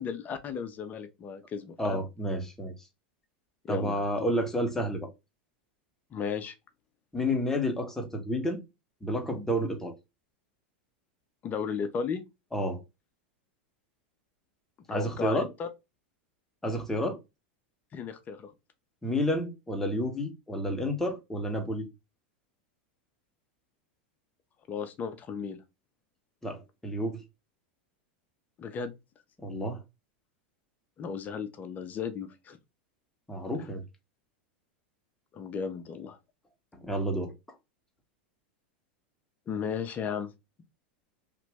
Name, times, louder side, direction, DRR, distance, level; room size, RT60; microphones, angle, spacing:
voice 1, 0.0-2.0 3.7-4.0 6.1-6.5 11.4-12.2 14.9-15.7 17.9-18.5 24.7-25.6 28.6-29.0 31.0-32.6 33.6-33.7 35.3-36.2 39.5-40.3, left 6 dB, 30° left, 0.7 m, -35 dB
voice 2, 1.8-2.7 3.7-5.1 7.1-8.6 9.0-9.9 12.5-12.8 14.9-15.5 16.6-17.2 19.0-21.9 26.4-27.2 29.4-29.8 33.3-33.8 36.7-37.3, equal, 5° left, 1.1 m, -30 dB
3.0 x 2.5 x 3.3 m
hypercardioid pair, 120°, 6 cm